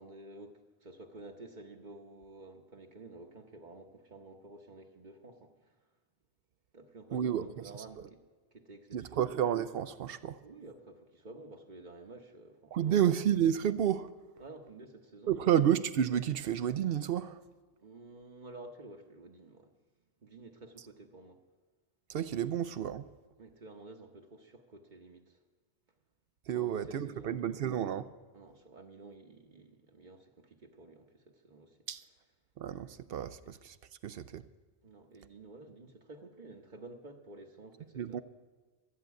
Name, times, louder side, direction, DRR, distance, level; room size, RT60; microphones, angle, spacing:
voice 1, 0.0-5.8 6.7-8.3 8.5-9.3 10.4-13.1 14.4-15.6 17.8-19.7 20.2-21.4 23.4-25.4 26.5-27.6 28.3-31.8 34.8-38.2, right 2 dB, 50° right, 1.1 m, -51 dB
voice 2, 7.1-7.5 8.9-10.4 12.7-14.1 15.3-17.4 22.1-23.1 26.5-28.1 31.9-32.0 32.6-33.8 34.0-34.4 38.0-38.2, right 10 dB, 70° right, 0.8 m, -30 dB
13.0 x 8.9 x 8.1 m
omnidirectional pair, 1.1 m